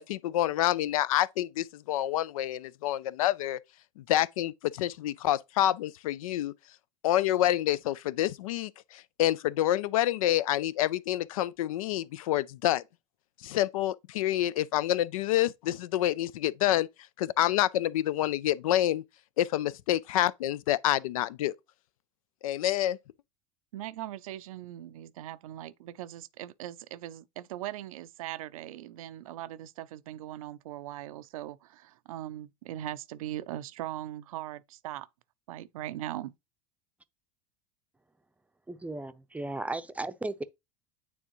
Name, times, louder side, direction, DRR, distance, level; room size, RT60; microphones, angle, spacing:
voice 1, 0.0-3.6 4.0-6.5 7.0-12.8 13.4-16.9 17.2-19.0 19.4-21.5 22.4-23.0, left 13 dB, 85° left, 0.4 m, -27 dB
voice 2, 23.7-35.1 35.5-36.3, right 13 dB, 85° right, 0.5 m, -40 dB
voice 3, 38.7-40.4, right 2 dB, 10° right, 0.6 m, -35 dB
9.1 x 3.5 x 3.0 m
supercardioid pair, 100°, 17 cm